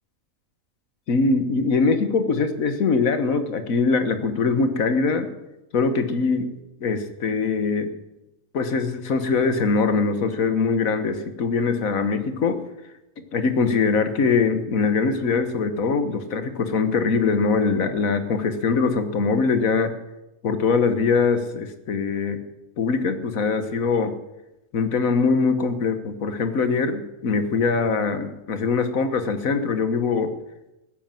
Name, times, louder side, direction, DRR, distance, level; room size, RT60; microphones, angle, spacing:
voice 1, 1.1-5.3 5.7-7.9 8.5-12.6 13.3-19.9 20.4-22.4 22.8-24.1 24.7-30.3, left 4 dB, 75° left, 9 dB, 1.7 m, -22 dB
15.0 x 10.0 x 7.5 m, 0.95 s
omnidirectional pair, 1.4 m